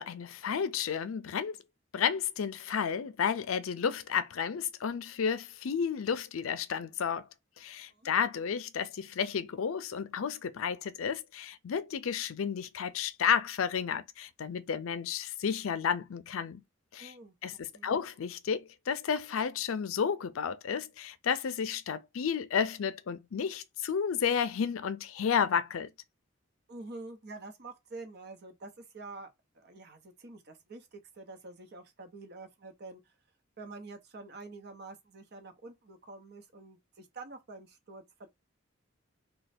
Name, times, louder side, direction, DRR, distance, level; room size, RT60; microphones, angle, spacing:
voice 1, 0.0-1.6 1.9-7.3 7.6-16.6 16.9-17.1 17.4-25.9, left 7 dB, 85° left, 0.4 m, -32 dB
voice 2, 17.0-17.9 26.7-33.1 33.6-38.3, right 3 dB, 55° right, 0.8 m, -47 dB
3.2 x 2.2 x 4.1 m
head